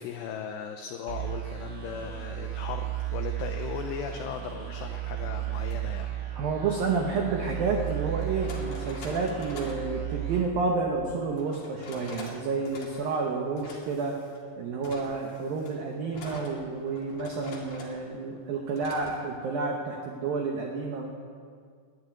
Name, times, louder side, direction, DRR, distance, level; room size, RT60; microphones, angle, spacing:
voice 1, 0.0-6.1, left 7 dB, 85° left, 5 dB, 2.4 m, -37 dB
sound 1, 1.1-11.4, right 13 dB, 55° right, 3.2 m, -35 dB
sound 2, 5.6-5.8 7.3-7.4 8.2-9.9 11.4-12.4 12.7-13.2 13.6-14.4 14.8-18.0 18.8-19.2, left 3 dB, 55° left, 3.4 m, -45 dB
voice 2, 6.4-14.2 14.6-21.1, right 4 dB, 75° right, 1 dB, 2.1 m, -30 dB
11.5 x 11.0 x 9.3 m, 2.1 s
omnidirectional pair, 5.8 m